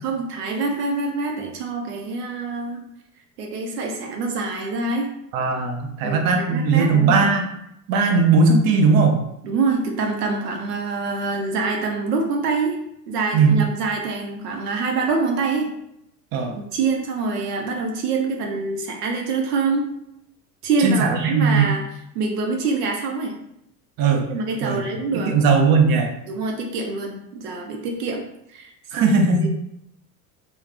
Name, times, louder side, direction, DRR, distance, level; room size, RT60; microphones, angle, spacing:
voice 1, 0.0-2.8 3.4-5.1 6.0-7.2 9.4-12.8 13.1-15.7 16.5-19.9 20.6-21.8 22.1-23.3 24.3-25.3 26.3-28.7 29.0-29.5, right 4 dB, 80° right, 1 dB, 0.7 m, -25 dB
voice 2, 5.3-7.4 7.9-9.2 13.3-13.6 16.3-16.5 20.8-21.7 24.0-24.3 24.6-24.8 25.1-26.1 28.9-29.5, right 4 dB, 45° right, 3 dB, 0.7 m, -18 dB
3.5 x 2.2 x 3.3 m, 0.77 s
hypercardioid pair, 70°, 47 cm